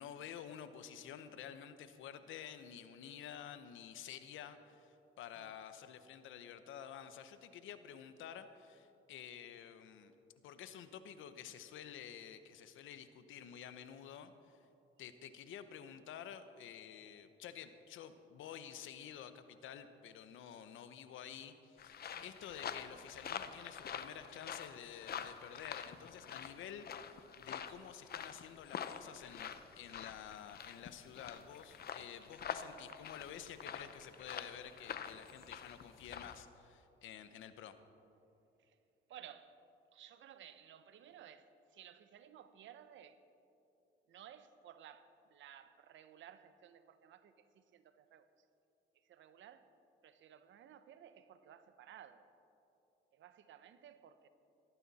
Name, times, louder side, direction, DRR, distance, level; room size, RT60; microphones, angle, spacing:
voice 1, 0.0-10.1 10.4-14.6 15.0-37.7, left 9 dB, 80° left, 11 dB, 0.9 m, -51 dB
sound 1, 21.8-36.4, left 8 dB, 50° left, 0.8 m, -47 dB
voice 2, 39.1-39.5 39.9-43.2 44.1-48.3 49.1-49.6 50.0-52.3 53.1-54.3, right 10 dB, 75° right, 12 dB, 0.9 m, -57 dB
18.0 x 13.5 x 4.2 m, 2.8 s
cardioid pair, 90°, 20 cm